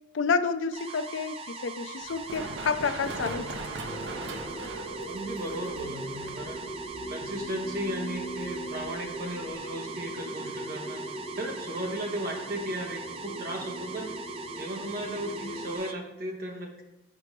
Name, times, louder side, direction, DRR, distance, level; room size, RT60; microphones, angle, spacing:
voice 1, 0.1-3.5, left 5 dB, 90° left, 11 dB, 0.4 m, -29 dB
sound 1, 0.7-15.9, right 4 dB, 30° right, 0.4 m, -41 dB
Run, 2.0-9.5, right 2 dB, 70° right, 0.7 m, -42 dB
voice 2, 3.2-3.9 5.1-6.7 7.1-14.1 14.5-16.8, right 1 dB, 50° right, 0 dB, 1.2 m, -36 dB
sound 2, 3.8-15.8, right 1 dB, 10° left, 1.9 m, -40 dB
5.1 x 4.7 x 5.9 m, 0.92 s
head